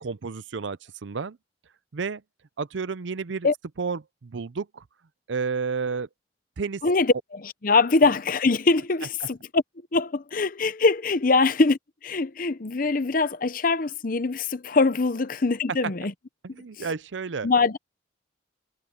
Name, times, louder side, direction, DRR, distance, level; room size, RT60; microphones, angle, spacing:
voice 1, 0.0-1.4 1.9-2.2 2.6-3.5 3.8-4.8 5.3-6.1 6.6-6.8 16.4-17.5, right 5 dB, 75° right, 0.6 m, -31 dB
voice 2, 6.8-9.6 9.9-16.1 16.8-16.9 17.4-17.8, left 3 dB, 45° left, 0.7 m, -23 dB
head